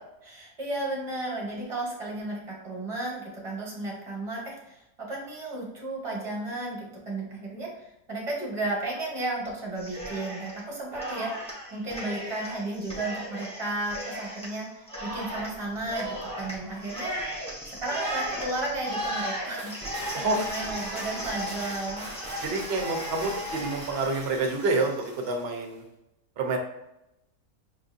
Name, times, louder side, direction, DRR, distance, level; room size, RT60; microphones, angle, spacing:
voice 1, 0.2-11.4 11.7-17.4 17.7-22.1, right 2 dB, 25° right, -3 dB, 1.1 m, -34 dB
Cheering, 9.8-10.6 10.9-25.4, right 1 dB, 5° left, 0.7 m, -36 dB
voice 2, 20.1-20.5 22.4-25.8 26.4-26.6, right 3 dB, 55° right, 3 dB, 0.7 m, -28 dB
5.9 x 2.6 x 2.5 m, 0.89 s
omnidirectional pair, 1.5 m